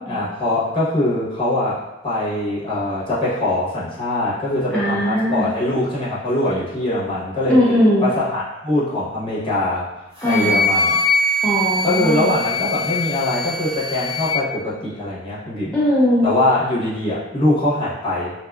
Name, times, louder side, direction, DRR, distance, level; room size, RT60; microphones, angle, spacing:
voice 1, 0.1-7.6 8.0-9.9 10.2-11.0 11.8-15.7 16.2-18.3, left 1 dB, 30° left, -9 dB, 0.8 m, -22 dB
voice 2, 4.7-5.5 7.5-8.1 10.2-10.6 11.4-12.3 15.7-16.3, left 1 dB, 5° left, -8 dB, 0.4 m, -18 dB
Wind instrument woodwind instrument, 10.2-14.4, left 2 dB, 25° right, 0.9 m, -22 dB
2.6 x 2.3 x 2.3 m, 1.0 s
head